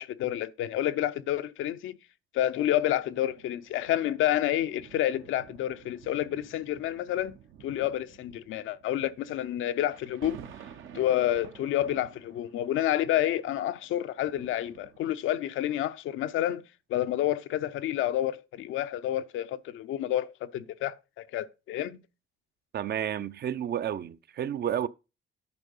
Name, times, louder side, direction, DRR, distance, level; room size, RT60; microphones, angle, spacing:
voice 1, 0.0-2.0 2.3-7.3 7.6-10.4 10.9-16.6 16.9-22.0, left 12 dB, 80° left, 0.7 m, -29 dB
sound 1, 2.7-15.4 16.1-16.3, right 8 dB, 80° right, 1.2 m, -51 dB
voice 2, 22.7-24.9, right 10 dB, 55° right, 0.6 m, -31 dB
9.8 x 4.7 x 5.5 m
cardioid pair, 90°, 20 cm